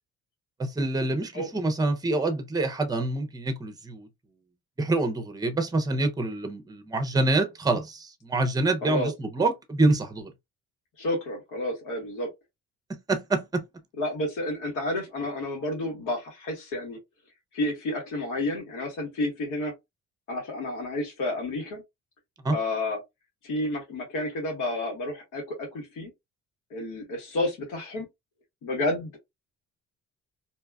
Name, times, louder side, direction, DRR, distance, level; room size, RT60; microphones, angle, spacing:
voice 1, 0.6-4.1 4.8-10.3 13.1-13.6 22.4-22.5, right 2 dB, 10° right, 0.6 m, -26 dB
voice 2, 8.8-9.1 11.0-12.3 14.0-17.0 17.5-19.7 20.3-21.8 22.5-23.0 23.4-26.1 26.7-28.1 28.6-29.2, left 1 dB, 85° left, 1.5 m, -30 dB
2.7 x 2.3 x 2.3 m
cardioid pair, 90°, 30 cm